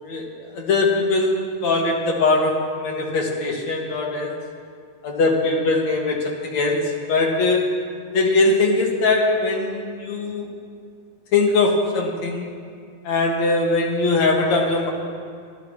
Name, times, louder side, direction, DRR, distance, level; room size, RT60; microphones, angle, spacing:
voice 1, 0.5-4.3 5.0-7.7 8.1-10.5 11.3-12.5 13.0-14.9, left 3 dB, 65° left, 0 dB, 3.0 m, -21 dB
25.5 x 14.5 x 3.1 m, 2.2 s
omnidirectional pair, 3.3 m